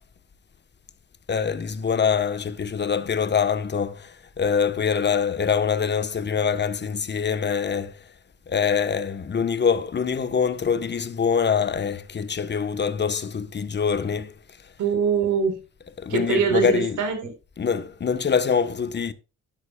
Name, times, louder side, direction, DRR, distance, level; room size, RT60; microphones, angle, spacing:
voice 1, 1.3-8.0 8.5-14.3 16.0-17.0 17.6-19.1, left 6 dB, 35° left, 1.2 m, -24 dB
voice 2, 14.8-15.6 16.1-17.3, right 6 dB, 80° right, 4.2 m, -23 dB
12.5 x 10.0 x 2.4 m
cardioid pair, 90°, 30 cm